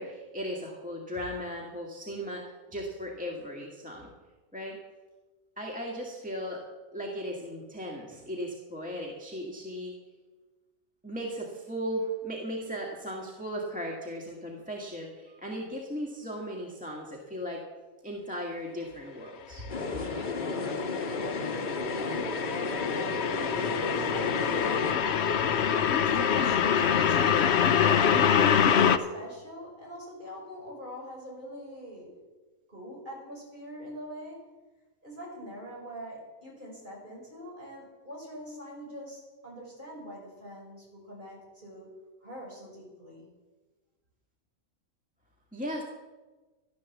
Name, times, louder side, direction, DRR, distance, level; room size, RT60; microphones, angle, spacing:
voice 1, 0.0-2.4 2.7-4.1 4.5-4.8 5.6-6.6 6.9-9.9 11.0-17.6 18.0-19.7 45.5-45.8, equal, 5° right, -2 dB, 1.8 m, -36 dB
sound 1, 19.7-24.9, left 3 dB, 35° left, 1.5 m, -33 dB
sound 2, 19.8-29.0, left 8 dB, 55° left, 0.9 m, -25 dB
voice 2, 22.0-23.3 23.6-32.2 32.7-34.5 35.0-43.3, equal, 35° right, -4 dB, 6.2 m, -44 dB
13.5 x 12.5 x 7.3 m, 1.3 s
omnidirectional pair, 1.5 m